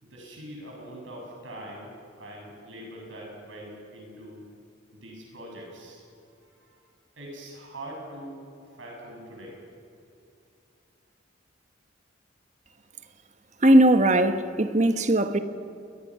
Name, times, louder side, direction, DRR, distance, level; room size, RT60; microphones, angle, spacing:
voice 1, 0.0-4.4 4.9-6.0 6.4-6.8 7.2-8.4 8.7-9.6, right 1 dB, 85° right, 7.5 m, -43 dB
voice 2, 13.6-15.4, right 1 dB, 40° right, 1.2 m, -19 dB
29.5 x 21.0 x 6.4 m
head